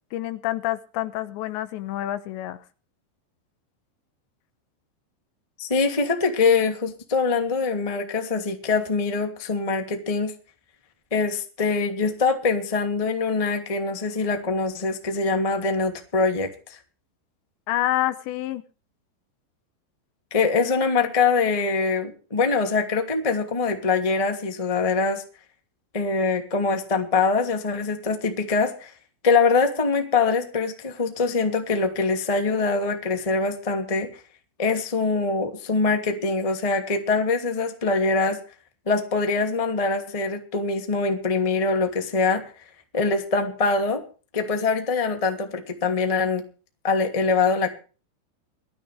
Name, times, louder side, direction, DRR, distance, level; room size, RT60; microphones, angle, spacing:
voice 1, 0.1-2.6 17.7-18.6, left 13 dB, 75° left, 13 dB, 3.0 m, -27 dB
voice 2, 5.6-10.3 11.1-16.8 20.3-25.2 25.9-28.9 29.2-34.2 34.6-38.4 38.8-42.5 42.9-44.0 44.3-46.4 46.8-47.7, left 4 dB, 15° left, 5 dB, 1.3 m, -23 dB
21.0 x 13.5 x 3.4 m, 0.37 s
omnidirectional pair, 5.4 m